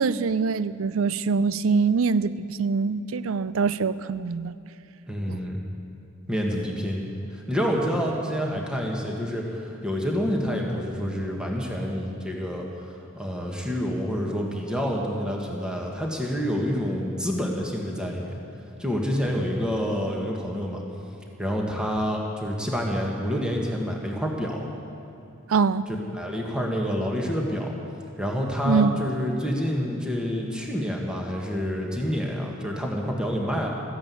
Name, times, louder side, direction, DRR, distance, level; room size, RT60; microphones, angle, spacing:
voice 1, 0.0-4.6 5.3-5.4 25.5-25.9 28.7-29.0, right 5 dB, 70° right, 16 dB, 0.5 m, -24 dB
voice 2, 5.1-5.6 6.3-12.7 13.1-18.4 18.8-20.8 21.4-24.7 26.1-27.7 28.2-33.7, equal, 5° right, -1 dB, 1.7 m, -28 dB
14.5 x 10.5 x 8.5 m, 2.7 s
head